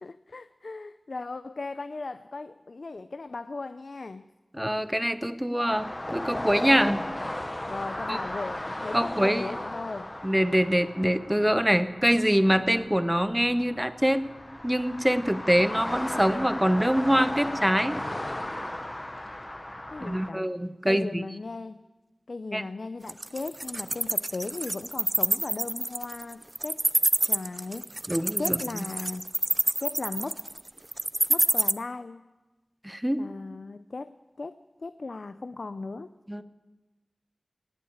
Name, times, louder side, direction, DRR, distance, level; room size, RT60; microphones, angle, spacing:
voice 1, 0.0-4.3 6.7-7.2 7.7-10.1 19.9-20.5 20.8-21.9 22.3-26.8 27.2-28.0 28.4-29.3 29.8-30.4 31.3-32.2 33.2-36.1, left 3 dB, 75° left, 13 dB, 0.4 m, -37 dB
voice 2, 4.5-7.0 8.1-8.2 8.9-9.5 10.2-14.2 14.6-18.0 20.0-21.2 22.5-22.6 28.1-28.9 32.8-33.2 36.3-36.4, equal, 10° right, 12 dB, 0.8 m, -24 dB
sound 1, 5.7-20.3, left 1 dB, 25° left, 0.8 m, -36 dB
Wild animals, 23.1-31.7, right 1 dB, 35° right, 0.4 m, -26 dB
18.5 x 7.3 x 8.6 m, 1.2 s
wide cardioid pair, 55°, 0 cm